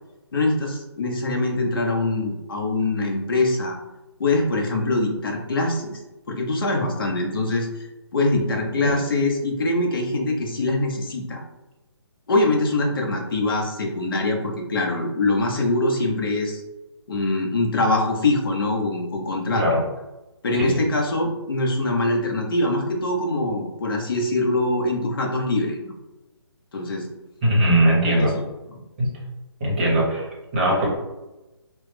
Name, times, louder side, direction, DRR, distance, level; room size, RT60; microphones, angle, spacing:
voice 1, 0.3-3.8 4.2-5.9 6.3-7.7 8.1-11.4 12.3-16.6 17.1-19.7 20.4-25.9 26.7-27.1 28.2-28.8, left 2 dB, 50° left, 1 dB, 0.7 m, -23 dB
voice 2, 27.4-28.3 29.0-29.1 29.6-30.9, right 1 dB, 25° right, -4 dB, 0.8 m, -20 dB
3.1 x 2.0 x 3.2 m, 1.0 s
hypercardioid pair, 170°, 14 cm